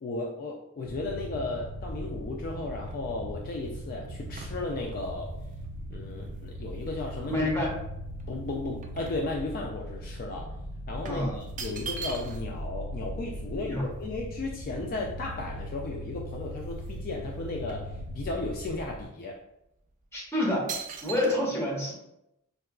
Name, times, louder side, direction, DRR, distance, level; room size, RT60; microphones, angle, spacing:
voice 1, 0.0-5.3 5.9-7.5 8.3-10.5 10.9-19.4, left 2 dB, 40° left, 0 dB, 0.3 m, -35 dB
sound 1, 0.8-19.0, equal, 55° left, 1.4 m, -39 dB
sound 2, 2.1-7.2 7.7-9.8 10.1-10.3 11.0-12.6 12.9-13.0 13.2-15.4 15.9-16.0 16.3-17.1 17.3-18.6 19.1-19.3 19.9-20.2 20.7-21.4, right 5 dB, 35° right, 0.3 m, -43 dB
voice 2, 7.3-7.7 11.1-11.4 13.7-13.8 20.1-20.7 21.0-21.9, left 1 dB, 10° left, -4 dB, 0.9 m, -28 dB
4.5 x 2.2 x 2.3 m, 0.84 s
head